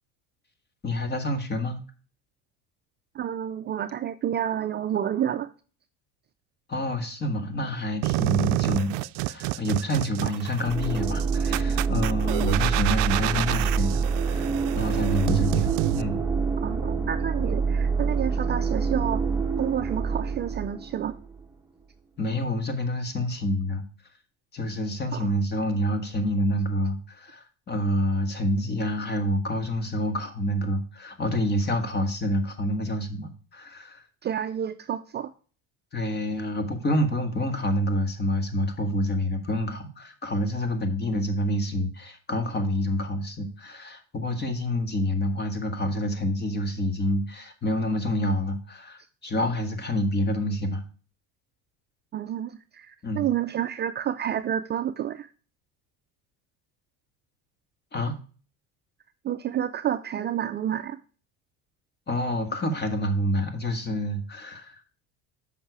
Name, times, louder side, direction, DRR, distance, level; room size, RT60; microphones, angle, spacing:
voice 1, 0.8-1.8 6.7-16.2 22.2-23.8 24.5-34.0 35.9-50.8 53.0-53.2 57.9-58.1 62.1-64.8, left 1 dB, 30° left, 1.8 m, -28 dB
voice 2, 3.1-5.5 16.6-19.2 19.6-21.2 25.1-25.3 34.2-35.3 52.1-55.3 59.2-61.0, right 10 dB, 30° right, 0.5 m, -29 dB
sound 1, 8.0-16.0, right 18 dB, 80° right, 0.5 m, -29 dB
sound 2, 10.7-21.4, right 5 dB, 5° right, 1.2 m, -26 dB
7.8 x 5.8 x 4.7 m
supercardioid pair, 115°, 34 cm